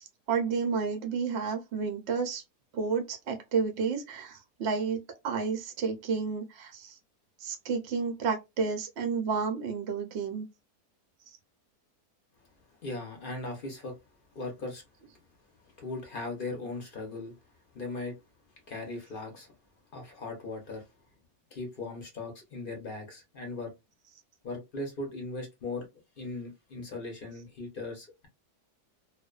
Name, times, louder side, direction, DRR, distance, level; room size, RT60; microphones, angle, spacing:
voice 1, 0.0-2.4 2.7-7.0 7.4-10.5, right 5 dB, 65° right, 0.6 m, -31 dB
voice 2, 12.8-13.9 14.3-14.8 15.6-17.3 17.7-18.2 18.7-19.5 19.9-20.9 21.5-23.7 24.4-25.9 26.2-28.3, left 2 dB, 45° left, 0.7 m, -38 dB
2.5 x 2.2 x 2.3 m
omnidirectional pair, 1.7 m